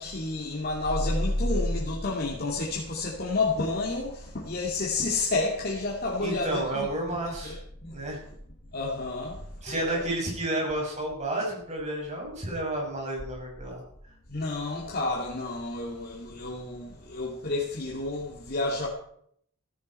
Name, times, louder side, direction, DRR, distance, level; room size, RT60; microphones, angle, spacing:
voice 1, 0.0-7.6 7.8-8.0 8.7-10.1 14.3-18.9, left 2 dB, 45° left, 2.5 m, -30 dB
voice 2, 6.2-7.6 7.9-8.2 9.6-13.8, right 1 dB, 30° right, 6.3 m, -31 dB
16.0 x 14.5 x 4.4 m
head